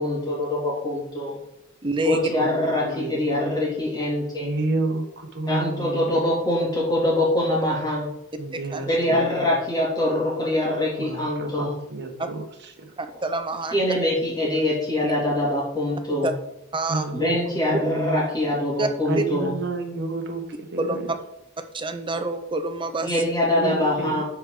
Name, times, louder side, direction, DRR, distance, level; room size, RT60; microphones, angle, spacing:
voice 1, 0.0-1.4 2.0-4.5 5.5-8.1 8.9-11.7 13.7-16.3 17.1-19.5 23.0-24.2, left 1 dB, 20° left, -3 dB, 2.7 m, -24 dB
voice 2, 1.8-2.2 8.7-8.8 13.0-13.7 15.0-15.1 16.2-16.3 16.7-17.1 18.8-18.9 20.8-21.0 21.7-23.1, right 2 dB, 25° right, 7 dB, 0.7 m, -27 dB
voice 3, 2.8-3.6 4.4-6.2 8.4-9.5 11.0-12.9 16.9-17.4 17.7-18.3 19.0-21.2 23.5-24.2, right 3 dB, 55° right, 4 dB, 1.3 m, -30 dB
10.5 x 4.8 x 3.9 m, 0.81 s
head